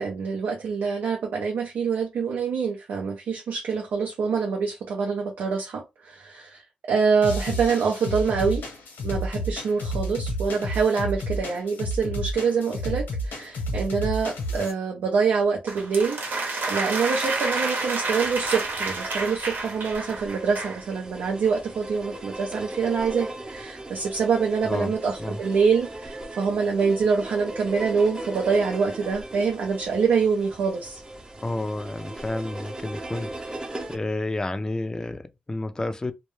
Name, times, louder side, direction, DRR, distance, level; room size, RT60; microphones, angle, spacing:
voice 1, 0.0-6.6 6.9-8.6 9.0-16.2 16.7-31.0, right 5 dB, 90° right, 0.5 m, -25 dB
sound 1, 7.2-14.7, equal, 90° left, 0.8 m, -31 dB
sound 2, 15.7-20.8, right 3 dB, 70° right, 0.8 m, -29 dB
sound 3, 18.1-34.0, right 1 dB, 25° right, 0.6 m, -38 dB
voice 2, 24.6-25.4 31.4-36.1, left 2 dB, 20° left, 0.3 m, -31 dB
2.2 x 2.0 x 3.1 m
cardioid pair, 80°, 3 cm